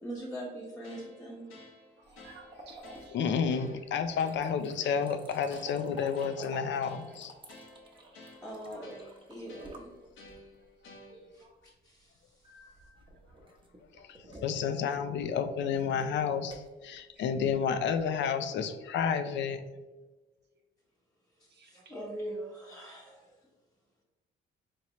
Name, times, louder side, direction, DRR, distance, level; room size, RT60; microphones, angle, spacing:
voice 1, 0.0-1.5 8.4-9.0 9.3-9.9 11.3-12.6 21.3-23.4, right 1 dB, 5° left, -6 dB, 0.8 m, -42 dB
sound 1, 0.8-11.5, left 1 dB, 90° left, 0.9 m, -53 dB
sound 2, 2.0-10.7 12.4-18.2, right 1 dB, 25° right, 0.8 m, -52 dB
voice 2, 2.1-3.2 6.6-6.8 8.7-8.8 11.1-11.5 14.0-14.1 17.2-17.3 21.5-21.8 23.1-23.2, right 4 dB, 60° right, 1 dB, 0.8 m, -56 dB
voice 3, 3.1-7.3 14.0-19.6, left 7 dB, 65° left, 9 dB, 0.4 m, -31 dB
4.2 x 2.9 x 3.0 m, 1.2 s
cardioid pair, 90°, 20 cm